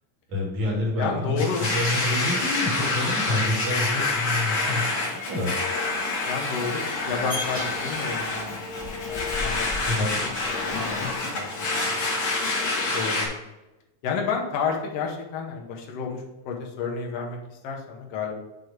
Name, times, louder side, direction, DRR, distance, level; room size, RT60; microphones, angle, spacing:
voice 1, 0.3-5.5 9.8-10.2, left 1 dB, 65° right, -5 dB, 3.3 m, -28 dB
voice 2, 1.0-1.6 6.2-8.5 8.8-12.1 12.9-13.4 14.0-18.3, left 5 dB, 65° left, 0 dB, 1.8 m, -31 dB
Domestic sounds home sounds, 1.4-13.3, left 3 dB, 50° left, 2.0 m, -27 dB
sound 1, 7.1-11.1, left 2 dB, 10° left, 1.1 m, -37 dB
8.0 x 3.0 x 5.1 m, 1.0 s
omnidirectional pair, 3.4 m